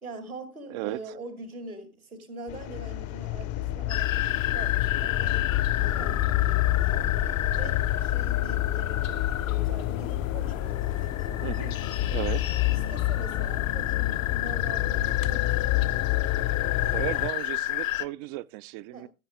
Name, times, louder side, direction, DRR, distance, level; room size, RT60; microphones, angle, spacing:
voice 1, 0.0-7.1 7.5-11.5 12.7-15.8 18.9-19.1, right 2 dB, 90° right, 2.6 m, -43 dB
voice 2, 0.7-1.2 11.4-11.8 12.1-12.6 16.8-19.1, right 18 dB, 40° right, 0.4 m, -35 dB
sound 1, 2.5-17.3, left 14 dB, 35° left, 0.7 m, -28 dB
sound 2, 3.9-18.1, left 14 dB, 70° left, 0.8 m, -32 dB
15.0 x 7.1 x 3.5 m
figure-of-eight pair, 85°, 42 cm